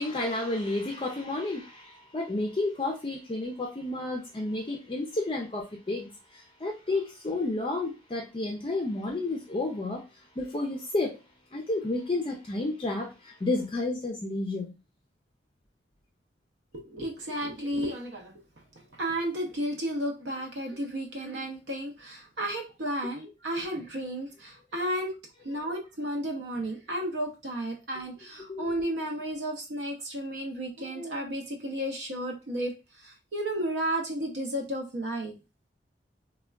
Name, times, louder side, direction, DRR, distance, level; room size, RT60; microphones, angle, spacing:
voice 1, 0.0-10.0 10.4-11.2 11.5-14.8 28.5-28.7, left 2 dB, 30° left, 0.4 m, -31 dB
voice 2, 16.7-18.3 18.9-25.1 25.4-35.3, right 1 dB, 70° right, 0.6 m, -33 dB
3.4 x 2.2 x 2.2 m
head